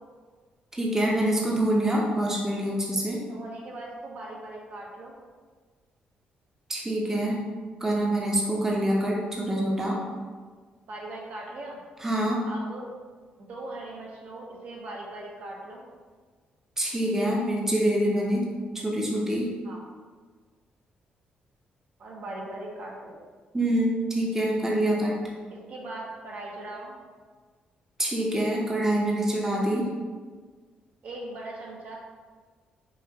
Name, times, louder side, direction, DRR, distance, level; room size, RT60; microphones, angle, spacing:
voice 1, 0.7-3.2 6.7-7.4 7.8-10.0 12.0-12.4 16.8-18.5 18.7-19.5 23.5-25.2 28.0-29.9, right 1 dB, 15° right, -3 dB, 0.7 m, -25 dB
voice 2, 3.3-5.2 10.9-11.8 12.4-12.9 13.4-15.9 19.6-19.8 22.0-23.2 25.5-27.0 31.0-32.0, right 2 dB, 60° right, -2 dB, 0.9 m, -39 dB
5.7 x 2.5 x 2.8 m, 1.5 s
cardioid pair, 105°, 3 cm